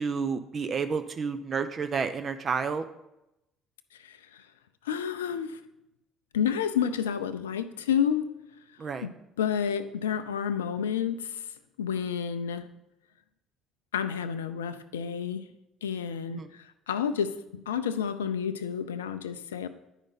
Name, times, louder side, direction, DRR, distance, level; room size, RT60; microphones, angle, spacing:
voice 1, 0.0-2.8 8.8-9.1 16.3-16.5, right 5 dB, 40° right, 9 dB, 0.5 m, -30 dB
voice 2, 4.0-4.5 4.8-5.6 6.3-8.3 9.0-9.1 9.4-11.5 11.8-12.7 13.9-15.4 15.8-19.7, left 8 dB, 80° left, 11 dB, 0.4 m, -30 dB
10.0 x 5.0 x 4.0 m, 0.89 s
figure-of-eight pair, 55°, 0 cm